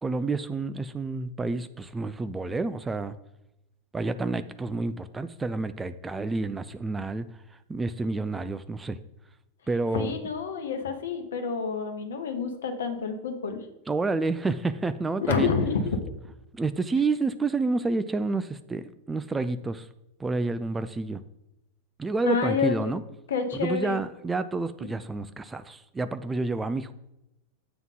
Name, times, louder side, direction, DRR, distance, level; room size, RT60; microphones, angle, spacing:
voice 1, 0.0-3.1 3.9-7.3 7.7-9.0 9.7-10.1 13.9-15.5 16.5-19.9 20.2-21.2 22.0-23.0 23.5-26.9, right 3 dB, 10° right, 11 dB, 0.3 m, -29 dB
voice 2, 9.9-13.7 15.3-16.0 22.2-22.9 23.3-24.0, left 5 dB, 65° left, 6 dB, 1.0 m, -28 dB
7.8 x 3.6 x 5.7 m, 0.86 s
figure-of-eight pair, 90°, 0 cm